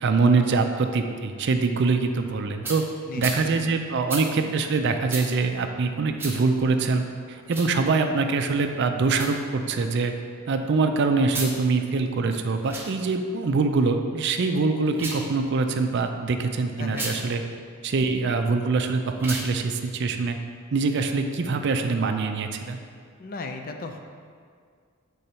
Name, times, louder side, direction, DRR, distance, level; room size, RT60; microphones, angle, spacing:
voice 1, 0.0-2.8 3.2-10.1 10.5-17.4 17.8-20.4 20.7-22.8, right 4 dB, 50° right, 6 dB, 0.4 m, -24 dB
sound 1, 2.6-2.8 3.2-3.4 4.1-4.2 5.1-5.3 6.2-6.4 7.4-7.7 9.1-9.3 11.2-11.5 12.6-12.9 14.9-15.3 16.9-17.2 19.2-19.5, right 2 dB, 10° right, 0.7 m, -32 dB
voice 2, 3.1-3.7 16.8-17.0 23.2-24.0, left 3 dB, 40° left, 5 dB, 0.4 m, -36 dB
6.9 x 3.8 x 4.3 m, 2.1 s
head